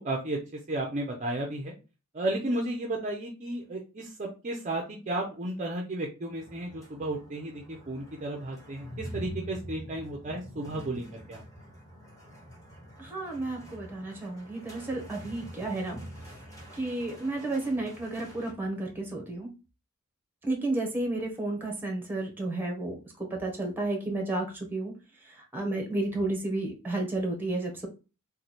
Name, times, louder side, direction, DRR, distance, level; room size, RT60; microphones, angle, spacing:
voice 1, 0.0-1.7 2.1-11.4, right 1 dB, 35° right, 1 dB, 0.6 m, -33 dB
sound 1, 6.2-18.5, equal, 15° left, 1.2 m, -46 dB
voice 2, 13.0-16.0 16.8-19.5 20.4-24.9 25.5-27.9, right 2 dB, 10° right, 1 dB, 0.9 m, -32 dB
3.1 x 2.2 x 4.1 m, 0.31 s
head